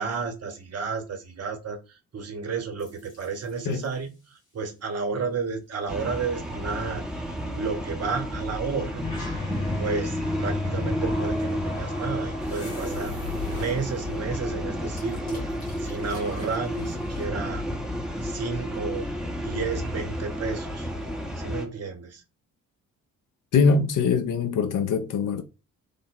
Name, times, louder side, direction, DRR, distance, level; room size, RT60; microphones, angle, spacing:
voice 1, 0.0-7.0 7.5-9.0 9.8-13.1 13.5-17.7 18.2-19.1 19.4-20.9 21.4-22.2, right 5 dB, 35° right, 1.0 m, -32 dB
sound 1, 2.8-3.7 9.0-17.2, left 3 dB, 80° left, 1.4 m, -35 dB
sound 2, 5.9-21.7, equal, ahead, 0.7 m, -32 dB
voice 2, 23.5-25.4, left 5 dB, 50° left, 0.8 m, -22 dB
3.5 x 2.1 x 3.6 m
figure-of-eight pair, 40°, 42 cm